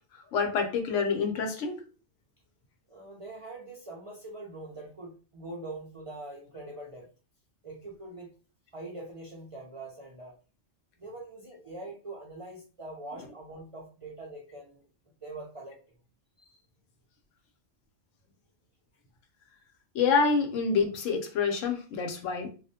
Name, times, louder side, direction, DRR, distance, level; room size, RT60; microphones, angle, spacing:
voice 1, 0.3-1.8 19.9-22.5, left 5 dB, 85° left, 4 dB, 0.9 m, -27 dB
voice 2, 2.9-7.1 7.6-8.3 8.7-10.3 11.0-14.9 15.2-15.8 16.4-16.6, right 2 dB, 50° right, -4 dB, 0.4 m, -43 dB
2.3 x 2.1 x 2.6 m, 0.36 s
omnidirectional pair, 1.3 m